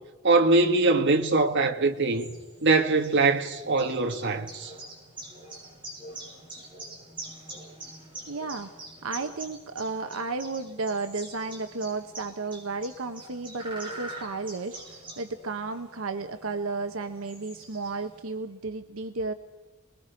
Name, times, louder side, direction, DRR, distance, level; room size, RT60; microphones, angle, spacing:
voice 1, 0.2-2.3 2.6-4.7, right 3 dB, 60° right, 1.7 m, -22 dB
sound 1, 1.7-18.3, right 2 dB, 25° right, 7.4 m, -45 dB
voice 2, 8.3-8.7 9.0-19.3, right 3 dB, 85° right, 1.1 m, -33 dB
28.0 x 21.0 x 5.2 m
head